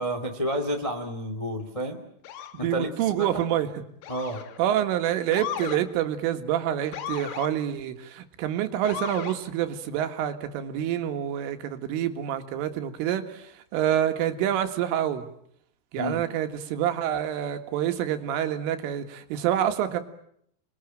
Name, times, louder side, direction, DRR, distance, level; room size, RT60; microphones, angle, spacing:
voice 1, 0.0-2.0 2.6-3.5 4.1-4.4 16.0-16.2, equal, 45° left, 5 dB, 0.4 m, -30 dB
Motor vehicle (road) / Siren, 2.2-2.6 4.0-4.6 5.3-5.8 6.9-7.5 8.8-9.4, left 10 dB, 85° left, 4.2 m, -35 dB
voice 2, 2.6-3.7 4.6-15.3 15.9-20.0, right 11 dB, 85° right, 8 dB, 4.2 m, -27 dB
29.0 x 22.0 x 9.0 m, 0.71 s
omnidirectional pair, 5.6 m